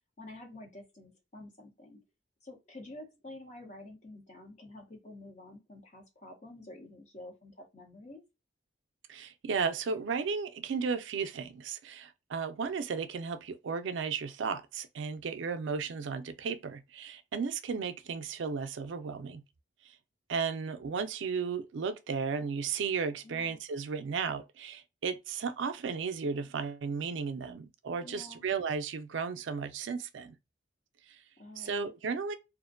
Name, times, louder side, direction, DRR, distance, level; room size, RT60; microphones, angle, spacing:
voice 1, 0.2-2.0 2.4-8.2 23.2-23.6 28.0-28.5 31.4-31.9, left 2 dB, 35° left, 0.8 m, -49 dB
voice 2, 9.1-19.4 19.9-20.0 20.3-30.3 31.1-31.2 31.6-32.3, right 5 dB, 75° right, 0.4 m, -34 dB
2.5 x 2.1 x 2.4 m
head